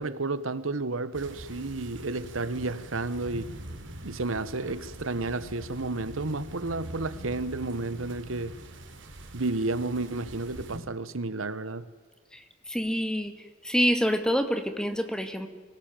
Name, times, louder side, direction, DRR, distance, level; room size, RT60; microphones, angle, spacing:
voice 1, 0.0-3.5 4.0-8.6 9.3-11.9, right 2 dB, 80° right, 1.2 m, -31 dB
sound 1, 1.1-10.8, right 1 dB, 65° right, 3.1 m, -43 dB
voice 2, 12.7-13.3 13.6-15.5, equal, 5° left, 1.8 m, -26 dB
25.0 x 18.0 x 9.1 m
head